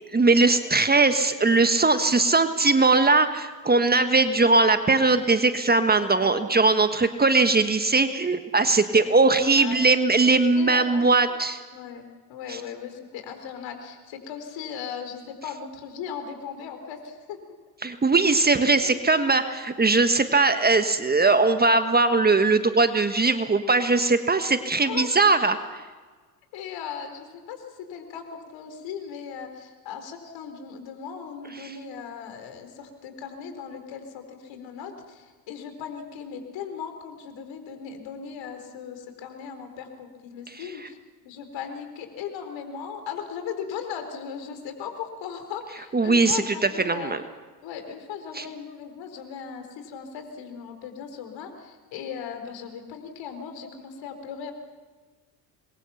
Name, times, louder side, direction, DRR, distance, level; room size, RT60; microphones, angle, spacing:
voice 1, 0.1-11.6 12.5-12.6 17.8-25.8 31.6-31.7 40.5-40.6 45.9-47.2 48.3-48.5, right 3 dB, 20° right, 9 dB, 1.5 m, -20 dB
voice 2, 5.9-6.6 8.9-9.8 10.5-11.1 11.7-17.4 18.7-19.0 19.8-20.0 24.7-25.3 26.5-41.0 41.2-47.2 47.6-54.5, left 7 dB, 60° left, 6 dB, 4.3 m, -38 dB
27.5 x 22.0 x 5.9 m, 1.4 s
hypercardioid pair, 65°, 50 cm